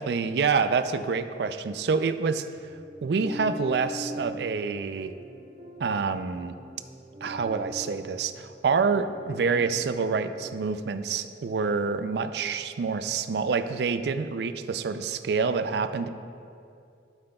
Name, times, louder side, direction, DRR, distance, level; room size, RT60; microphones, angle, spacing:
voice 1, 0.0-2.5 3.0-5.1 5.8-6.5 7.2-16.1, right 5 dB, 70° right, 10 dB, 0.4 m, -27 dB
sound 1, 2.6-10.5, right 1 dB, 45° right, 1.6 m, -42 dB
12.5 x 7.7 x 2.3 m, 2.5 s
head